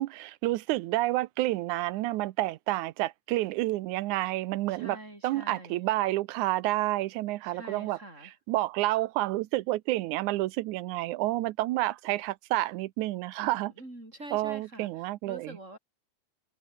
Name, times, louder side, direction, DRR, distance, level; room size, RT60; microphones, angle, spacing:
voice 1, 0.0-5.0 5.2-8.0 8.5-13.7 14.3-15.6, right 17 dB, 80° right, 2.1 m, -29 dB
voice 2, 4.7-5.8 7.4-8.3 13.8-15.8, right 1 dB, 20° right, 6.7 m, -46 dB
omnidirectional pair, 3.5 m